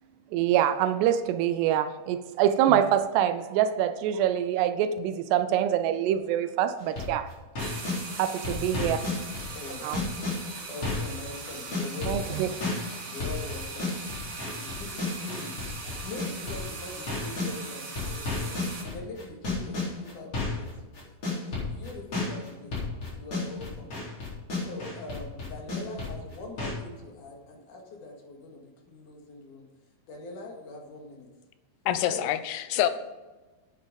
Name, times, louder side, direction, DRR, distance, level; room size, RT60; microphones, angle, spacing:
voice 1, 0.3-7.3 8.1-9.0 9.8-10.0 12.0-12.5, right 10 dB, 85° right, 10 dB, 2.8 m, -25 dB
sound 1, 6.8-8.0 8.4-11.2 11.4-17.5 18.0-26.7, left 3 dB, 35° left, 4.8 m, -32 dB
sound 2, 7.6-18.8, right 4 dB, 60° right, 4.3 m, -40 dB
voice 2, 9.5-9.9 10.7-12.4 13.0-13.9 14.6-20.9 21.3-22.7 23.2-23.9 24.6-29.7 30.1-31.3 32.1-32.2 32.7-32.8, left 2 dB, 55° left, 1 dB, 3.2 m, -42 dB
voice 3, 31.9-32.9, left 12 dB, 85° left, 12 dB, 2.9 m, -26 dB
10.0 x 9.1 x 5.2 m, 1.2 s
omnidirectional pair, 4.8 m